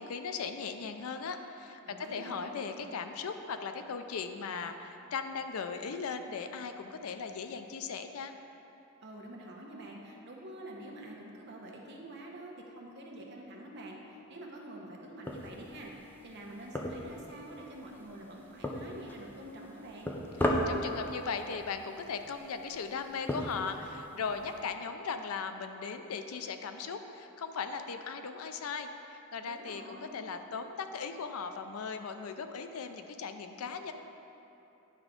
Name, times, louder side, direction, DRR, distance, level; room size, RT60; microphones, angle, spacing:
voice 1, 0.0-8.3 20.4-33.9, left 5 dB, 80° left, 8 dB, 0.4 m, -38 dB
voice 2, 1.8-2.6 9.0-15.9 16.2-20.2 29.4-30.2, right 1 dB, 50° right, -1 dB, 1.0 m, -47 dB
sound 1, 15.2-24.6, left 1 dB, 10° left, 0.5 m, -38 dB
9.7 x 3.5 x 5.1 m, 3.0 s
head